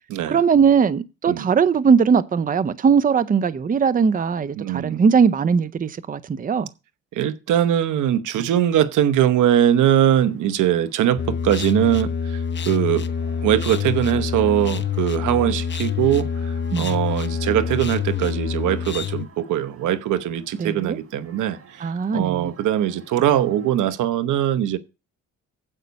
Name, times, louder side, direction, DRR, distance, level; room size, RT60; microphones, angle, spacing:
voice 1, 0.3-6.7 16.7-17.0 20.6-21.0 21.8-22.5, right 6 dB, 30° right, 0.6 m, -19 dB
voice 2, 4.6-5.0 7.1-12.4 12.7-13.1 13.4-24.8, right 11 dB, 80° right, 1.0 m, -21 dB
sound 1, 9.7-23.8, right 4 dB, 50° right, 4.1 m, -50 dB
sound 2, 11.2-19.2, left 7 dB, 40° left, 0.8 m, -26 dB
8.8 x 8.2 x 5.2 m
cardioid pair, 90°, 30 cm